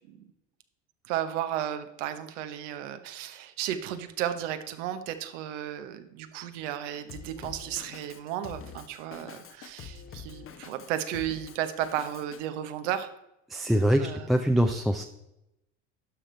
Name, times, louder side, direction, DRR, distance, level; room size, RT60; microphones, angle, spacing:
voice 1, 1.1-13.1 14.0-14.3, right 11 dB, 80° right, 9 dB, 1.0 m, -34 dB
Drum kit, 7.1-12.4, left 7 dB, 35° left, 0.9 m, -46 dB
voice 2, 13.5-15.0, equal, ahead, 4 dB, 0.5 m, -24 dB
12.0 x 5.1 x 4.4 m, 0.87 s
supercardioid pair, 95°, 36 cm